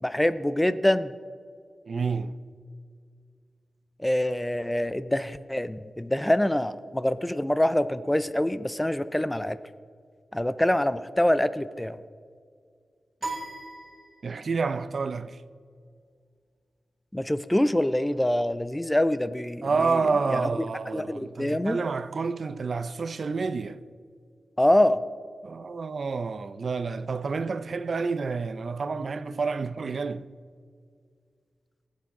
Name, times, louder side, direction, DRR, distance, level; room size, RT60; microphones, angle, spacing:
voice 1, 0.0-1.1 4.0-9.6 10.3-12.0 17.1-20.0 20.3-20.5 20.9-21.8 24.6-25.0, left 1 dB, 10° left, 0.3 m, -25 dB
voice 2, 1.9-2.4 14.2-15.4 19.6-23.8 25.4-30.3, right 4 dB, 55° right, 0.4 m, -29 dB
sound 1, 13.2-14.6, right 2 dB, 20° right, 3.1 m, -38 dB
19.0 x 8.4 x 3.7 m
wide cardioid pair, 140°, 0 cm